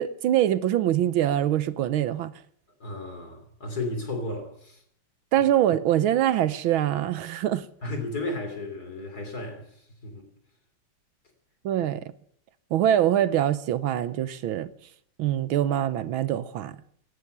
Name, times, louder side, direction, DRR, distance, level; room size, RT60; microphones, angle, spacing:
voice 1, 0.0-2.3 5.3-7.6 11.6-12.1 12.7-14.7 15.2-16.8, right 11 dB, 70° right, 1.6 m, -24 dB
voice 2, 2.8-4.8 7.8-10.3, left 2 dB, 45° left, 3.5 m, -34 dB
17.5 x 12.0 x 6.8 m
omnidirectional pair, 2.4 m